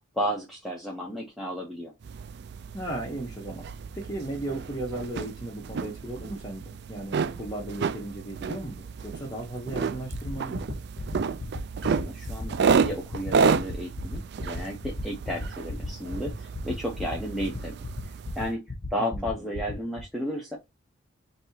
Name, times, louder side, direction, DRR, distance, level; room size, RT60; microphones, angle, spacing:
voice 1, 0.2-1.9 12.0-17.7 18.4-18.6 18.9-20.6, equal, ahead, 0.8 m, -33 dB
sound 1, 2.0-18.5, right 5 dB, 50° right, 0.3 m, -31 dB
voice 2, 2.7-3.7 3.9-10.6 19.0-19.5, right 1 dB, 15° left, 1.1 m, -36 dB
sound 2, 10.1-20.0, left 3 dB, 40° left, 1.1 m, -35 dB
5.2 x 2.9 x 2.8 m
head